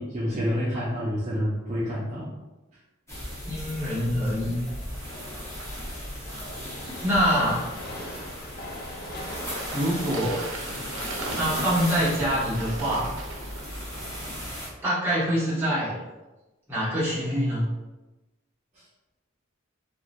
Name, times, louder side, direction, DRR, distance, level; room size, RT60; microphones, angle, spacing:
voice 1, 0.0-2.3, equal, 35° right, -8 dB, 0.5 m, -28 dB
sound 1, 3.1-14.7, equal, 15° left, 0.8 m, -36 dB
voice 2, 3.5-4.6 7.0-7.7 9.7-10.4 11.3-13.1 14.8-16.0 16.7-17.6, equal, 10° right, -10 dB, 1.2 m, -25 dB
Train, 6.3-12.8, left 1 dB, 55° left, 0.6 m, -42 dB
Bird / Water, 7.7-14.4, right 2 dB, 90° right, 0.5 m, -40 dB
2.9 x 2.5 x 2.4 m, 1.1 s
head